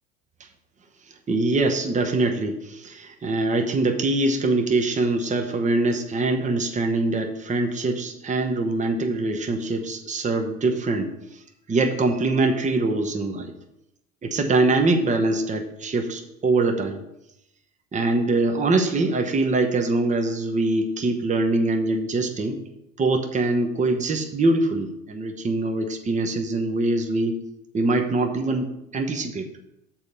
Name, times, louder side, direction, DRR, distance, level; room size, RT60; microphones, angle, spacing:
voice 1, 1.3-11.1 11.7-13.5 14.2-17.0 17.9-22.6 23.0-27.4 27.7-29.5, right 2 dB, 20° right, 5 dB, 0.9 m, -23 dB
7.2 x 4.1 x 6.7 m, 0.83 s
figure-of-eight pair, 70°, 39 cm